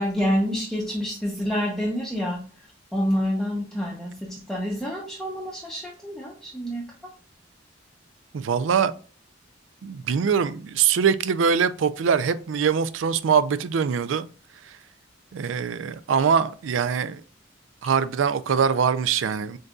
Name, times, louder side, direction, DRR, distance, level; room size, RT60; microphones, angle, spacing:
voice 1, 0.0-7.1, equal, ahead, 0.7 m, -28 dB
voice 2, 8.3-8.9 9.8-14.3 14.7-14.8 15.3-17.2 17.8-19.6, right 6 dB, 90° right, 0.4 m, -23 dB
7.5 x 2.6 x 2.3 m
head